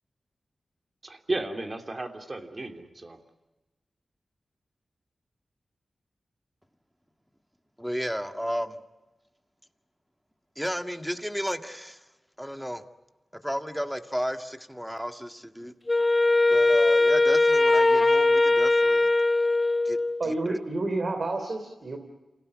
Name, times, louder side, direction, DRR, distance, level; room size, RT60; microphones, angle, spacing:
voice 1, 1.0-3.2, right 2 dB, 40° right, 5 dB, 3.0 m, -34 dB
voice 2, 7.8-8.8 10.6-12.1 12.4-12.8 13.3-15.7 16.5-19.1 19.8-20.6, equal, ahead, 7 dB, 1.8 m, -33 dB
Wind instrument woodwind instrument, 15.9-20.3, left 2 dB, 35° left, 0.9 m, -21 dB
voice 3, 20.2-22.0, right 2 dB, 60° right, 5 dB, 3.2 m, -29 dB
27.5 x 17.5 x 9.6 m, 1.1 s
cardioid pair, 45°, 0 cm